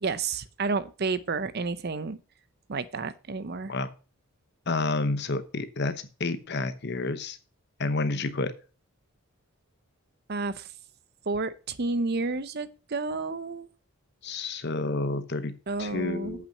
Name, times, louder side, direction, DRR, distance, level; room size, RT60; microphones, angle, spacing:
voice 1, 0.0-2.2 2.7-3.7 10.3-10.7 11.3-13.7 15.7-16.5, right 3 dB, 45° right, 0.6 m, -30 dB
voice 2, 4.7-7.4 7.8-8.5 14.2-15.5 15.8-16.5, left 3 dB, 50° left, 1.0 m, -29 dB
8.4 x 5.9 x 6.6 m
head